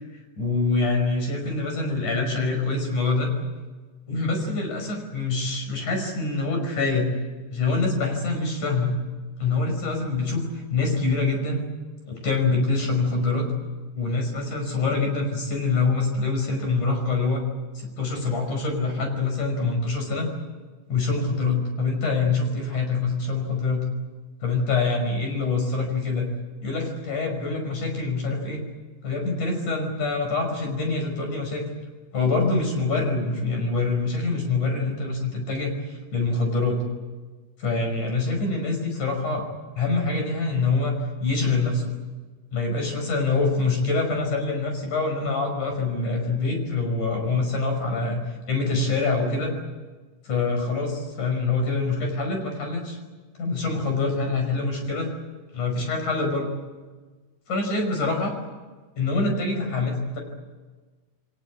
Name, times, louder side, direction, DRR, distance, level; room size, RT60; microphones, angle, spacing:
voice 1, 0.4-3.3 4.1-7.1 7.5-9.0 9.4-10.4 10.7-11.7 12.1-13.5 14.0-17.4 17.8-20.3 20.9-23.9 24.4-26.3 26.6-28.6 29.0-31.6 32.1-36.8 37.6-39.5 39.8-40.9 41.2-41.9 42.5-49.5 50.2-53.0 53.4-55.1 55.5-56.5 57.5-58.3 59.0-60.2, left 3 dB, 85° left, 3 dB, 7.0 m, -25 dB
29.0 x 22.0 x 8.5 m, 1.3 s
omnidirectional pair, 3.4 m